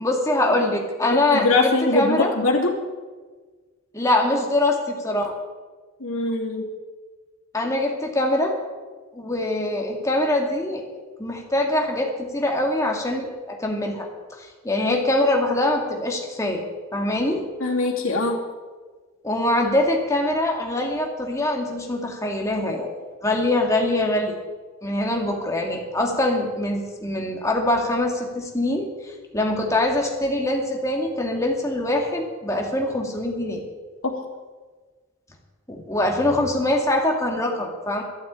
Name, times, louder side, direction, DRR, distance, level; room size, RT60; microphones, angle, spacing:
voice 1, 0.0-2.3 3.9-5.3 7.5-8.5 9.1-14.1 14.4-16.6 16.9-17.4 19.2-24.4 24.8-33.6 35.7-38.0, left 1 dB, 15° left, 1 dB, 2.3 m, -23 dB
voice 2, 1.1-2.7 6.0-6.7 17.6-18.4 34.0-34.2, left 2 dB, 85° left, -2 dB, 2.8 m, -22 dB
12.5 x 11.5 x 8.6 m, 1.4 s
head